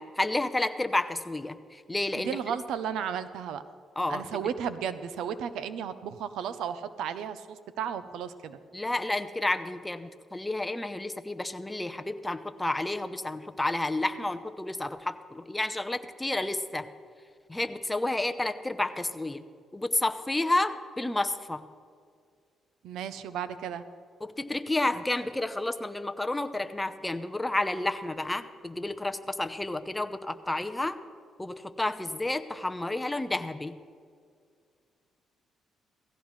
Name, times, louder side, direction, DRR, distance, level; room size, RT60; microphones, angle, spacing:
voice 1, 0.0-2.6 4.0-4.4 8.7-16.9 17.5-19.4 19.7-21.6 24.2-31.0 31.4-33.8, left 2 dB, 10° left, 8 dB, 0.7 m, -31 dB
voice 2, 2.1-3.6 4.1-8.6 22.8-23.8, right 8 dB, 85° right, 13 dB, 0.6 m, -34 dB
17.0 x 15.5 x 3.2 m, 2.2 s
cardioid pair, 90°, 0 cm